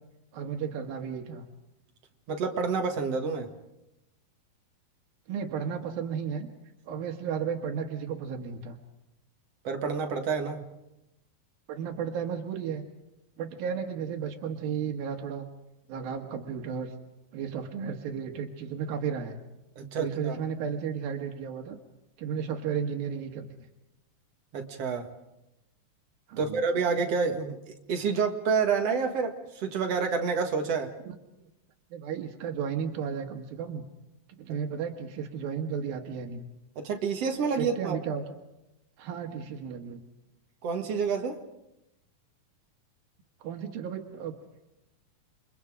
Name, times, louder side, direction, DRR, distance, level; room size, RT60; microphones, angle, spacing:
voice 1, 0.3-1.5 5.3-6.5 6.9-8.8 11.7-12.8 13.4-15.5 15.9-16.9 17.3-19.4 20.0-21.8 22.2-23.5 26.3-26.6 31.0-31.5 31.9-33.8 34.4-36.4 37.6-38.2 39.0-40.0 43.4-44.3, right 7 dB, 85° right, 3 dB, 3.3 m, -34 dB
voice 2, 2.3-3.5 9.6-10.6 19.8-20.4 24.5-25.1 26.4-30.9 36.8-38.0 40.6-41.4, right 5 dB, 50° right, 4 dB, 2.5 m, -28 dB
29.0 x 24.5 x 5.0 m, 0.92 s
omnidirectional pair, 4.1 m